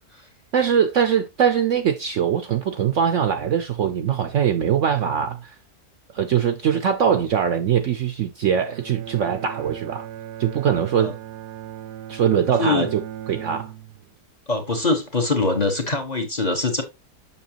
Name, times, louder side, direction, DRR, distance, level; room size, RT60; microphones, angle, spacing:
voice 1, 0.5-5.6 6.1-10.1 10.4-11.2 12.1-13.0 13.3-13.7, right 8 dB, 60° right, 0.8 m, -22 dB
Bowed string instrument, 8.7-14.2, right 11 dB, 85° right, 1.2 m, -37 dB
voice 2, 14.5-16.8, left 3 dB, 30° left, 1.0 m, -23 dB
7.1 x 6.1 x 2.9 m
omnidirectional pair, 1.7 m